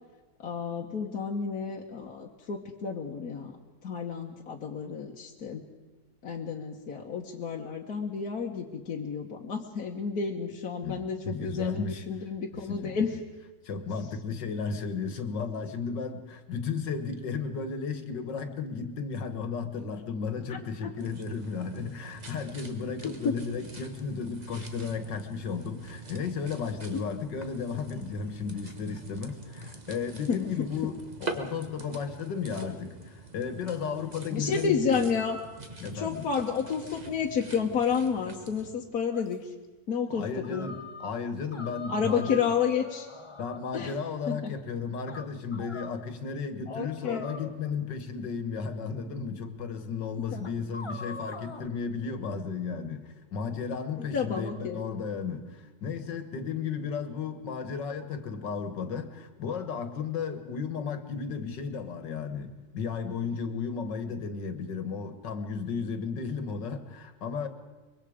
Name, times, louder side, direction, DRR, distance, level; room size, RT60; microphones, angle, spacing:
voice 1, 0.4-3.6 3.8-5.6 6.2-13.2 20.5-20.9 23.0-23.3 26.9-27.0 30.3-30.4 34.3-35.4 35.9-39.5 39.9-40.7 41.9-43.1 43.7-44.0 44.3-44.5 46.7-47.3 50.3-50.5 54.1-54.8, left 6 dB, 60° left, 0 dB, 1.6 m, -31 dB
voice 2, 11.2-12.0 12.7-13.0 13.6-35.0 35.8-36.3 40.1-42.5 43.4-67.5, left 5 dB, 80° left, 8 dB, 2.0 m, -34 dB
sound 1, 21.0-38.7, right 2 dB, 25° right, 1.5 m, -45 dB
sound 2, 39.1-39.4 40.4-41.1 41.5-44.0 45.1-46.0 47.0-48.0 48.9-49.0 49.6-49.7 50.4-51.7, left 4 dB, 25° left, 0.6 m, -43 dB
24.5 x 22.5 x 5.0 m, 1.2 s
omnidirectional pair, 1.9 m